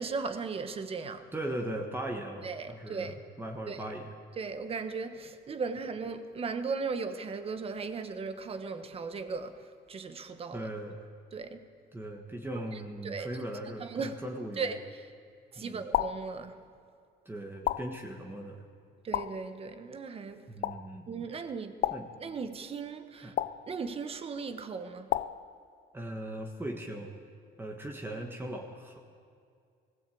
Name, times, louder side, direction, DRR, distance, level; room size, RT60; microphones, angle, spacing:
voice 1, 0.0-1.2 2.4-3.1 3.7-3.8 4.4-10.7 11.3-11.7 13.0-13.4 13.8-14.2 14.6-14.8 15.5-16.5 19.0-20.5 21.1-21.8 22.2-23.3 23.7-25.1, right 4 dB, 30° right, 1.3 m, -37 dB
voice 2, 1.3-4.1 10.5-11.0 11.9-14.7 15.5-15.9 17.2-18.6 20.5-21.1 21.9-22.1 23.2-23.3 25.9-27.1 27.6-29.0, right 1 dB, 10° right, 1.5 m, -39 dB
sound 1, 15.9-16.3 17.7-18.1 19.1-19.5 20.6-20.9 21.8-22.2 23.4-23.7 25.1-25.5, left 12 dB, 55° left, 0.5 m, -31 dB
19.5 x 16.5 x 8.5 m
cardioid pair, 150°, 18 cm